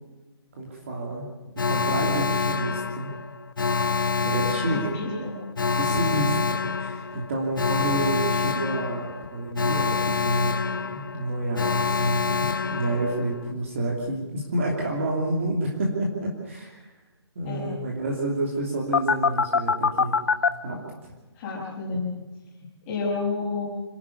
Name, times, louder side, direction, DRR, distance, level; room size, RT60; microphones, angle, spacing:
voice 1, 0.5-1.3 1.7-3.1 4.2-4.9 5.8-16.9 17.3-20.1 20.6-20.8, right 1 dB, 30° right, -1 dB, 2.9 m, -29 dB
Alarm, 1.6-13.5 18.9-20.5, left 5 dB, 50° left, 1.0 m, -26 dB
voice 2, 4.7-5.4 17.4-17.7 21.4-22.0 22.8-23.7, left 3 dB, 10° left, -5 dB, 5.8 m, -30 dB
27.0 x 12.5 x 8.4 m, 1.1 s
hypercardioid pair, 175°, 14 cm